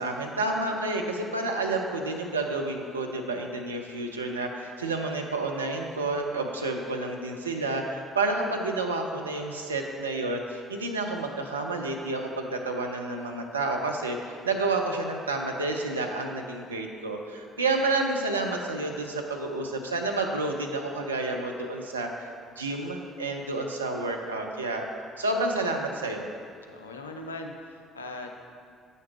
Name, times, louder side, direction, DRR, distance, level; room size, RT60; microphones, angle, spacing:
voice 1, 0.0-22.3 22.6-24.8 25.2-26.3, right 2 dB, 80° right, 2 dB, 0.5 m, -30 dB
voice 2, 26.7-28.4, left 2 dB, 80° left, 3 dB, 0.5 m, -40 dB
8.5 x 6.5 x 3.3 m, 2.3 s
figure-of-eight pair, 50°, 0 cm